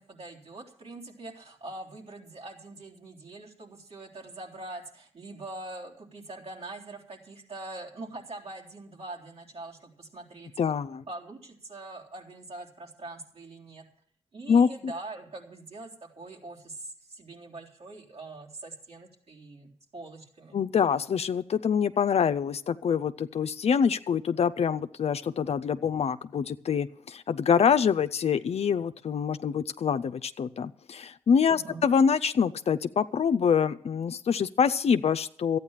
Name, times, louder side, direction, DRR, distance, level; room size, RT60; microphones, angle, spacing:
voice 1, 0.0-10.5 10.8-13.8 14.3-20.6 31.5-31.8, right 2 dB, 60° right, 0 dB, 3.5 m, -43 dB
voice 2, 10.6-11.0 14.5-14.9 20.5-35.6, left 7 dB, 65° left, 11 dB, 0.6 m, -25 dB
13.0 x 9.2 x 7.3 m, 0.63 s
supercardioid pair, 40°, 11 cm